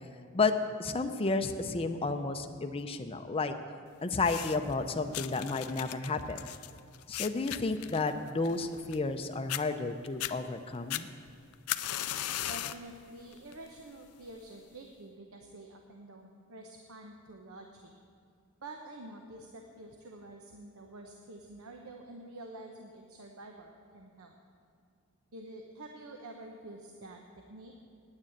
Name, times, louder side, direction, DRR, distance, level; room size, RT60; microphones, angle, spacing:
voice 1, 0.8-3.5 4.0-6.4 7.1-11.1, left 3 dB, 25° left, 7 dB, 0.5 m, -32 dB
sound 1, 4.1-4.7 5.1-9.2 9.5-9.6 10.1-10.3 10.9-12.9 13.3-13.7 14.5-14.6, left 13 dB, 85° left, 0.4 m, -37 dB
voice 2, 12.5-17.9 18.6-24.4 25.3-27.2 27.5-27.7, right 2 dB, 75° right, 2 dB, 0.9 m, -48 dB
9.5 x 9.0 x 8.6 m, 2.4 s
head